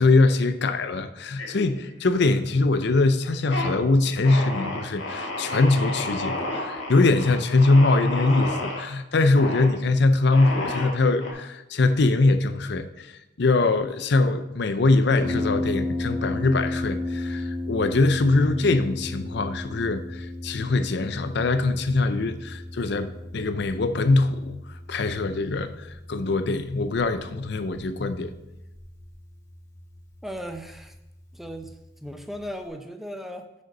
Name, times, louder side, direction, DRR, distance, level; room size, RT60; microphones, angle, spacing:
voice 1, 0.0-13.1 13.4-24.6 24.9-28.3, left 3 dB, 60° left, 11 dB, 0.5 m, -22 dB
sound 1, 1.4-2.1 2.5-3.0 3.3-3.7 4.2-8.8 9.4-9.7 10.3-11.3, left 2 dB, 85° left, 1.9 m, -31 dB
Harp, 15.2-32.7, left 2 dB, 15° left, 1.4 m, -35 dB
voice 2, 30.2-30.9 31.3-33.6, equal, ahead, 5 dB, 0.6 m, -37 dB
7.9 x 5.3 x 5.4 m, 0.94 s
head